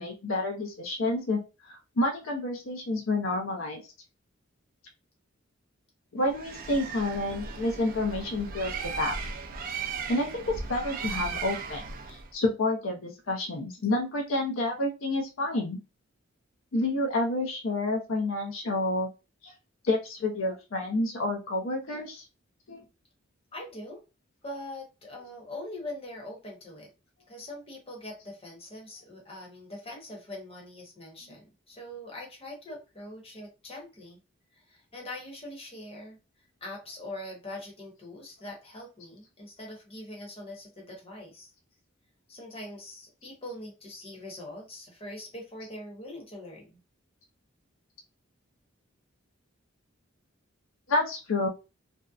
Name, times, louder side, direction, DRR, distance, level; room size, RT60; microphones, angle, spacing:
voice 1, 0.0-1.4 1.7-3.8 6.1-9.1 10.1-15.8 16.7-19.1 19.4-19.5 19.8-22.2 22.7-22.8 50.9-51.5, left 2 dB, 85° left, 1 dB, 0.6 m, -29 dB
Bird, 6.3-12.3, right 5 dB, 45° right, 0.3 m, -37 dB
voice 2, 23.5-24.0 24.4-26.9 27.3-34.2 34.5-36.2 36.6-41.5 42.3-46.8, left 1 dB, 30° left, -1 dB, 0.9 m, -42 dB
2.6 x 2.0 x 2.3 m, 0.29 s
head